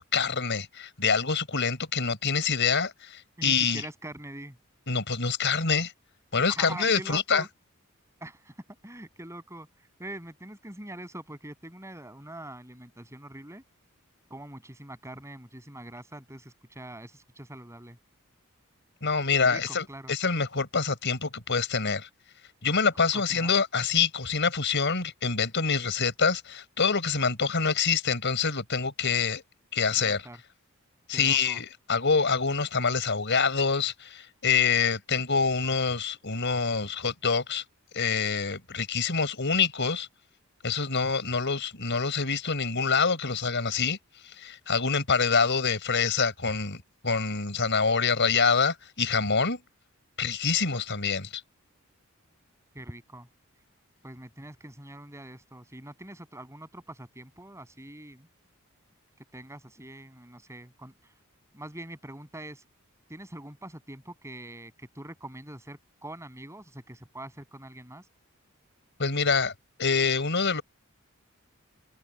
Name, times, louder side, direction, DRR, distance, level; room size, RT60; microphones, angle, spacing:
voice 1, 0.0-3.8 4.9-5.9 6.3-7.4 19.0-22.1 22.6-29.4 29.7-30.2 31.1-37.6 37.9-40.1 40.6-44.0 44.4-49.6 50.2-51.4 69.0-69.5 69.8-70.6, left 5 dB, 60° left, 5.1 m, -26 dB
voice 2, 3.4-4.6 6.5-7.5 8.2-8.5 8.8-9.7 10.0-13.6 14.3-18.0 19.4-20.1 23.1-23.6 30.0-30.4 31.1-31.6 52.7-53.3 54.0-58.3 59.3-60.9 61.5-62.6 63.1-68.0, right 1 dB, 15° right, 6.9 m, -43 dB
head